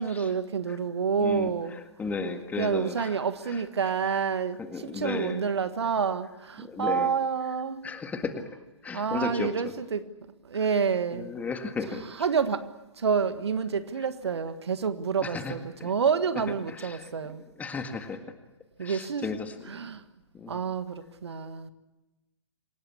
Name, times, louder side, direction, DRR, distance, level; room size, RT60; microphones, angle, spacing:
voice 1, 0.0-1.8 2.5-7.8 8.9-10.0 10.4-11.3 11.8-12.6 13.0-17.4 18.8-19.3 19.6-20.0 20.5-21.7, right 6 dB, 60° right, 1.7 m, -28 dB
voice 2, 1.2-1.5 2.0-3.2 4.6-5.4 6.6-7.1 7.8-8.5 8.8-9.7 11.1-12.0 15.2-15.5 15.8-15.9 16.7-17.1 17.6-18.3 18.8-19.5 20.3-20.6, left 4 dB, 10° left, 1.9 m, -34 dB
27.5 x 18.0 x 8.5 m
figure-of-eight pair, 120°, 16 cm